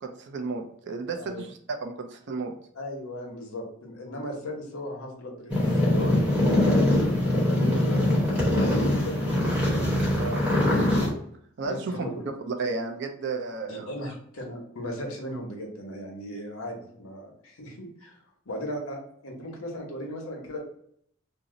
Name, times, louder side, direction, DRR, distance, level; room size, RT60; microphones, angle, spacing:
voice 1, 0.0-2.5 10.2-10.4 11.6-12.0 12.5-13.9, right 4 dB, 55° right, 5 dB, 0.4 m, -33 dB
voice 2, 1.1-1.5 2.7-6.6 6.9-9.4 11.6-12.3 13.7-18.2 18.5-20.6, equal, 85° left, 1 dB, 0.9 m, -37 dB
sound 1, 5.5-11.1, left 1 dB, 5° right, 0.9 m, -23 dB
2.7 x 2.0 x 3.6 m, 0.67 s
head